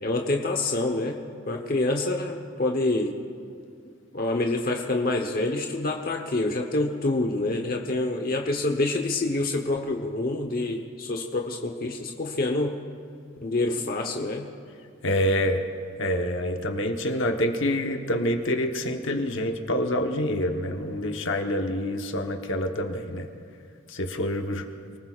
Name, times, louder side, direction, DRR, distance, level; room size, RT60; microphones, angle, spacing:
voice 1, 0.0-3.2 4.1-12.8 13.4-14.5, left 2 dB, 45° left, 2 dB, 1.0 m, -27 dB
voice 2, 15.0-15.6 16.0-23.3 23.9-24.6, left 1 dB, 60° left, 4 dB, 1.1 m, -26 dB
28.0 x 19.5 x 2.5 m, 2.3 s
head